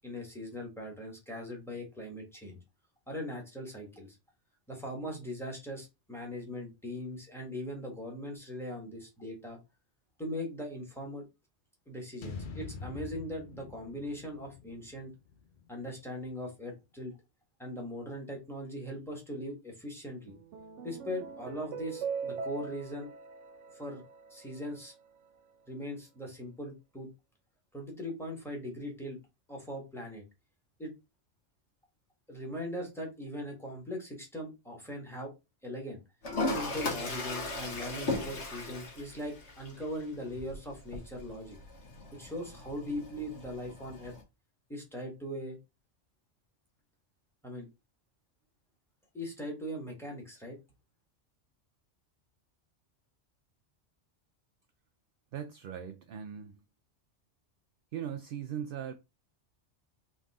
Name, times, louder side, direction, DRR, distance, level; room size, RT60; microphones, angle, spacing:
voice 1, 0.0-2.6 3.1-4.2 4.7-9.6 10.2-11.2 11.9-15.1 15.7-17.2 17.6-20.4 20.8-23.1 23.7-24.0 24.3-24.9 25.7-27.1 27.7-29.2 29.5-30.2 30.8-30.9 32.3-35.3 35.6-36.0 36.4-41.6 42.1-44.1 44.7-45.6 47.4-47.7 49.1-50.6, equal, ahead, 1.6 m, -40 dB
Cinematic Dramatic Stinger Drum Hit Drama, 12.2-16.4, left 5 dB, 50° left, 0.8 m, -46 dB
sound 1, 20.3-24.8, right 5 dB, 80° right, 1.0 m, -41 dB
Toilet flush, 36.2-44.2, left 2 dB, 70° left, 1.6 m, -38 dB
voice 2, 55.3-56.6 57.9-58.9, right 9 dB, 60° right, 0.6 m, -39 dB
3.9 x 3.5 x 3.6 m
omnidirectional pair, 1.2 m